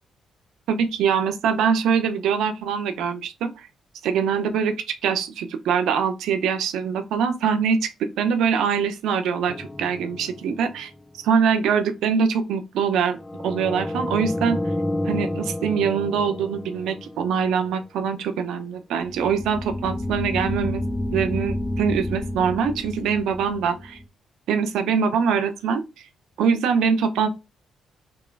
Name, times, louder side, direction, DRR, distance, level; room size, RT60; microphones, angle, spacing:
voice 1, 0.7-3.7 4.0-4.7 5.0-10.9 11.2-13.2 13.4-14.6 15.0-20.8 21.1-24.0 24.5-25.8 26.4-27.3, right 6 dB, 80° right, 0.7 m, -23 dB
sound 1, 9.5-10.9 13.2-17.6 19.0-24.0, left 1 dB, 15° left, 0.5 m, -30 dB
3.7 x 3.0 x 4.6 m
cardioid pair, 90°, 0 cm